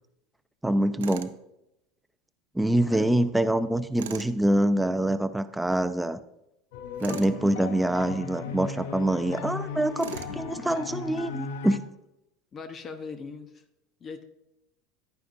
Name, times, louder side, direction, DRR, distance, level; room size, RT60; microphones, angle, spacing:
voice 1, 0.6-1.3 2.5-6.2 7.0-11.8, right 1 dB, 5° right, 12 dB, 0.6 m, -25 dB
Tools, 1.0-1.4 4.0-4.3 7.0-7.4 10.0-10.4, right 10 dB, 85° right, 0.5 m, -39 dB
voice 2, 2.8-3.1 12.5-13.6 14.0-14.2, left 4 dB, 35° left, 8 dB, 0.9 m, -40 dB
sound 1, 6.7-11.8, left 5 dB, 75° left, 0.8 m, -37 dB
10.5 x 9.3 x 2.6 m, 0.86 s
hypercardioid pair, 90°, 0 cm